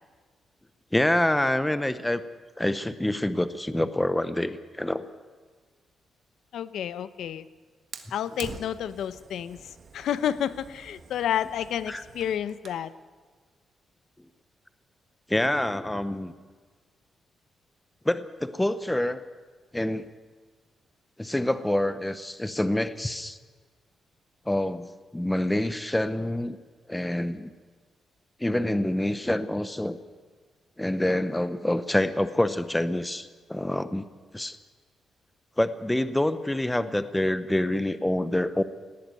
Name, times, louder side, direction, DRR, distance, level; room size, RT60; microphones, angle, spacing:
voice 1, 0.9-2.2 2.6-5.1 11.9-12.0 15.3-16.3 18.0-19.2 19.7-20.1 21.2-23.4 24.5-24.9 25.1-26.6 26.9-27.5 28.4-30.0 30.8-34.1 34.3-34.6 35.6-38.6, left 1 dB, 5° left, 12 dB, 0.7 m, -26 dB
voice 2, 6.5-7.5 8.1-12.9, left 10 dB, 80° left, 14 dB, 0.8 m, -30 dB
Fire, 7.9-12.9, right 5 dB, 40° right, 1.6 m, -46 dB
19.0 x 16.5 x 9.1 m, 1.5 s
wide cardioid pair, 180°, 0 cm